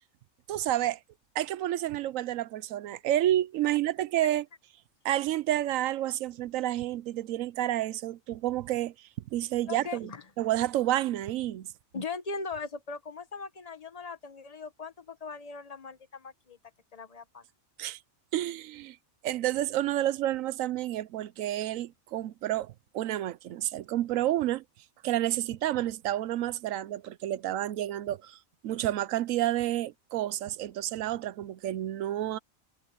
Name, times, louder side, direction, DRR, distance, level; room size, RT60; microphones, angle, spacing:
voice 1, 0.5-1.0 1.3-4.4 5.0-10.1 10.4-11.7 17.8-18.0 18.3-19.0 19.2-24.6 25.0-28.4 28.6-32.4, right 13 dB, 80° right, 1.0 m, -30 dB
voice 2, 9.7-10.2 11.9-16.6 16.9-17.4, left 4 dB, 30° left, 1.3 m, -39 dB
omnidirectional pair, 1.4 m